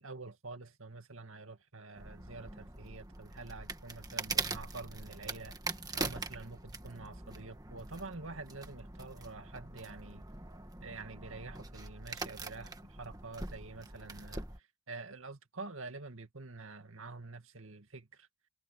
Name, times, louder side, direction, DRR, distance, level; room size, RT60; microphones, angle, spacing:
voice 1, 0.0-5.6 5.9-10.2 10.8-18.3, right 3 dB, 70° right, 2.2 m, -47 dB
sound 1, 1.9-14.6, right 3 dB, 15° right, 1.6 m, -42 dB
head